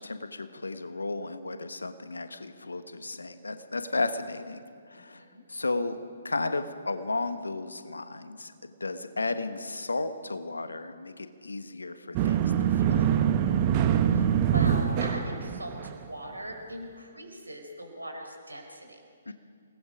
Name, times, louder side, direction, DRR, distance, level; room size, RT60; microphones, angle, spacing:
voice 1, 0.0-4.6 4.9-5.2 5.5-6.0 6.2-13.1 19.3-19.4, left 3 dB, 75° left, 9 dB, 1.4 m, -34 dB
sound 1, 12.1-16.0, right 9 dB, 30° right, 1.2 m, -24 dB
voice 2, 14.5-19.3, right 1 dB, 85° right, 3 dB, 4.7 m, -40 dB
28.0 x 19.5 x 5.1 m, 2.1 s
figure-of-eight pair, 130°, 0 cm